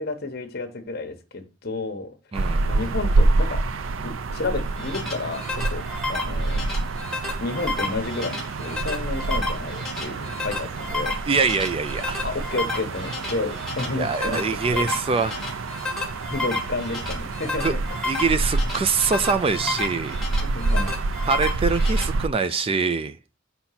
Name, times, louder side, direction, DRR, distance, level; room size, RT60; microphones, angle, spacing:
voice 1, 0.0-2.1 2.6-3.6 4.0-6.6 7.4-11.1 12.2-14.9 15.2-15.5 16.3-17.8 20.4-21.0, left 3 dB, 50° left, 1.1 m, -31 dB
voice 2, 2.3-2.7 11.3-12.2 13.9-15.4 17.6-17.7 18.1-20.2 21.3-23.2, right 4 dB, 30° right, 0.4 m, -24 dB
sound 1, 2.3-22.3, right 3 dB, 80° right, 0.5 m, -27 dB
sound 2, 4.6-22.0, left 2 dB, ahead, 1.6 m, -32 dB
5.5 x 4.4 x 5.7 m
head